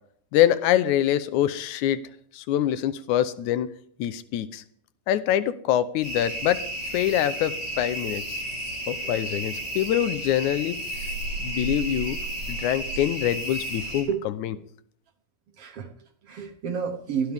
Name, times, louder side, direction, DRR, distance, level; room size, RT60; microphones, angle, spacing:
voice 1, 0.3-2.0 2.3-3.7 4.0-4.6 5.1-6.6 6.9-8.4 8.9-10.8 11.4-12.2 12.5-14.1 14.4-14.5, left 11 dB, 85° left, 13 dB, 1.7 m, -24 dB
sound 1, 6.0-14.0, right 1 dB, 40° left, 7.3 m, -32 dB
voice 2, 14.1-14.6 15.6-17.3, right 6 dB, 70° right, 5 dB, 1.4 m, -31 dB
22.5 x 15.5 x 3.5 m, 0.62 s
omnidirectional pair, 4.4 m